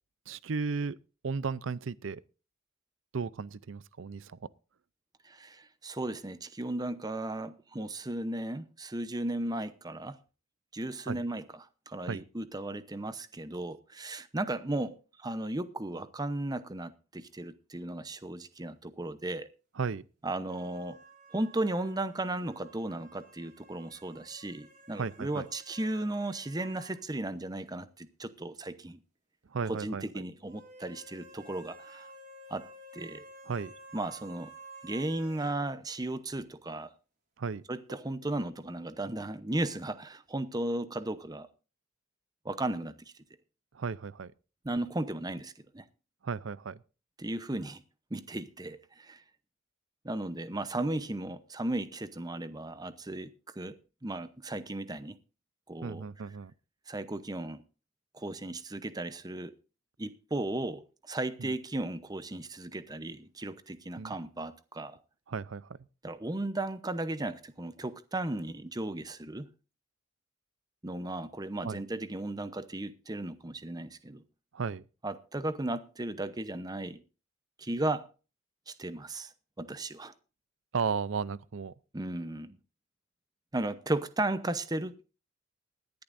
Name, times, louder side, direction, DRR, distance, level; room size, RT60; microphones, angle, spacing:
voice 1, 0.3-1.0 1.2-2.2 3.1-4.4 11.1-11.2 12.0-12.2 19.8-20.0 24.9-25.5 29.5-30.2 33.5-33.7 37.4-37.6 43.7-44.3 46.2-46.8 55.8-56.5 61.4-61.5 64.0-64.2 65.3-65.7 71.6-71.8 74.5-74.8 80.7-81.7, right 5 dB, 70° right, 0.5 m, -34 dB
voice 2, 5.2-10.2 10.7-19.5 20.2-21.0 21.3-29.0 29.7-32.1 32.5-32.7 32.9-33.2 33.9-34.5 34.8-36.9 37.7-41.5 42.4-43.1 44.6-45.8 47.2-47.8 48.1-49.2 50.0-53.3 53.6-53.7 54.0-55.2 55.7-56.1 56.9-57.6 58.1-59.5 60.0-65.0 66.0-69.5 70.8-74.2 75.0-77.0 77.6-78.1 78.7-79.3 79.6-80.1 81.9-82.6 83.5-84.9, right 2 dB, 20° right, 0.8 m, -35 dB
sound 1, 20.5-27.0 27.3-27.4 30.5-35.6, right 2 dB, 40° right, 5.8 m, -53 dB
20.5 x 10.5 x 2.6 m
head